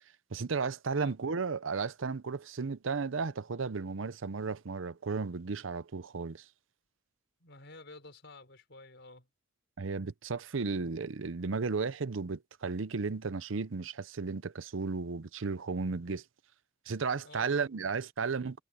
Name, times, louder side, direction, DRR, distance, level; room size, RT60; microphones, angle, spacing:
voice 1, 0.3-6.5 9.8-16.2 16.9-18.6, right 4 dB, 70° right, 0.7 m, -34 dB
voice 2, 7.4-9.3 17.2-17.7, left 2 dB, 60° left, 5.4 m, -52 dB
head